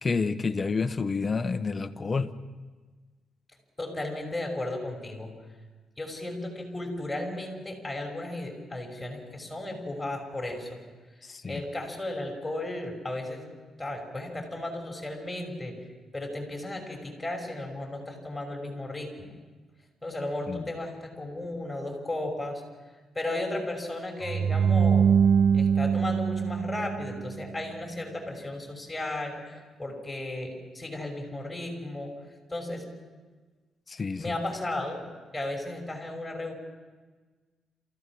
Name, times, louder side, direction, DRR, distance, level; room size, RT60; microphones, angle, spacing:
voice 1, 0.0-2.3 11.2-11.6 20.5-20.6 33.9-34.3, left 4 dB, 35° left, 10 dB, 1.2 m, -29 dB
voice 2, 3.8-5.3 6.0-10.8 11.2-13.5 13.8-15.8 16.1-19.4 20.0-22.6 23.1-25.1 25.5-32.2 32.5-32.9 34.2-36.5, left 1 dB, 15° left, 2 dB, 5.9 m, -35 dB
sound 1, 24.2-27.4, right 7 dB, 65° right, 0.8 m, -23 dB
28.0 x 15.5 x 6.2 m, 1.4 s
cardioid pair, 85°, 0 cm